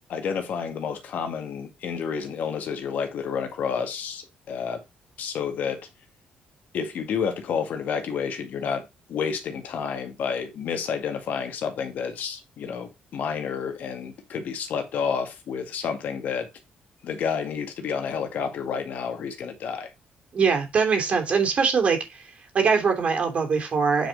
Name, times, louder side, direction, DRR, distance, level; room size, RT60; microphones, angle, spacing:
voice 1, 0.1-4.8 5.2-5.8 6.7-16.5 17.0-19.9, left 6 dB, 65° left, 2.0 m, -30 dB
voice 2, 20.3-22.3 22.5-24.1, right 5 dB, 45° right, 3.0 m, -22 dB
8.9 x 5.2 x 4.0 m
cardioid pair, 130°, 3 cm